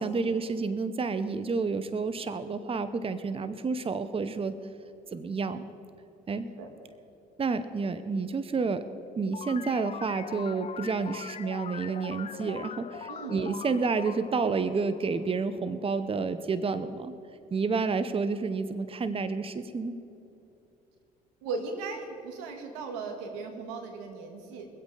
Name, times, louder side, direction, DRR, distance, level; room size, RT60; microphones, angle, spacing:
voice 1, 0.0-4.5 5.1-5.6 6.3-6.5 7.4-8.8 9.2-17.1 17.5-20.0, right 4 dB, 30° right, 12 dB, 0.8 m, -30 dB
sound 1, 9.3-15.6, left 7 dB, 35° left, 0.5 m, -42 dB
voice 2, 13.1-13.4 21.4-24.7, right 4 dB, 90° right, 4 dB, 1.9 m, -37 dB
23.0 x 8.2 x 4.9 m, 2.8 s
supercardioid pair, 65°, 20 cm